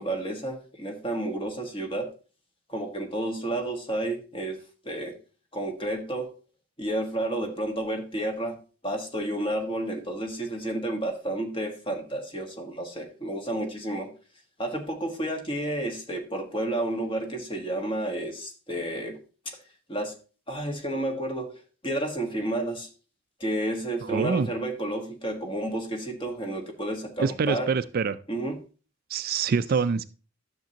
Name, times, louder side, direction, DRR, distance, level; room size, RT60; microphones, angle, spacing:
voice 1, 0.0-2.1 2.7-4.6 4.8-5.1 5.5-6.3 6.8-8.6 8.8-14.1 14.6-19.2 19.4-19.6 19.9-20.1 20.5-21.6 21.8-22.9 23.4-27.7 28.3-28.6, right 1 dB, 25° left, 1.5 m, -31 dB
voice 2, 24.0-24.5 27.2-28.2 29.1-30.0, right 5 dB, 50° right, 0.4 m, -25 dB
11.5 x 6.7 x 2.9 m
head